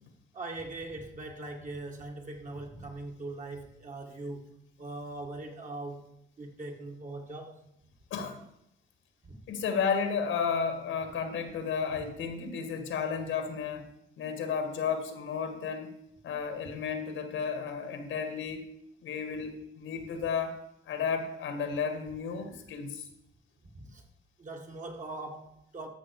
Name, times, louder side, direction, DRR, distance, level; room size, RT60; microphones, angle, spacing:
voice 1, 0.3-6.1 6.4-7.6 9.2-9.3 23.7-24.0 24.4-25.9, right 2 dB, 40° right, 2.1 m, -41 dB
voice 2, 9.5-13.9 14.2-15.9 16.2-18.6 19.0-20.6 20.9-23.1, left 6 dB, 80° left, 1.9 m, -33 dB
13.5 x 6.1 x 4.8 m
cardioid pair, 90°, 20 cm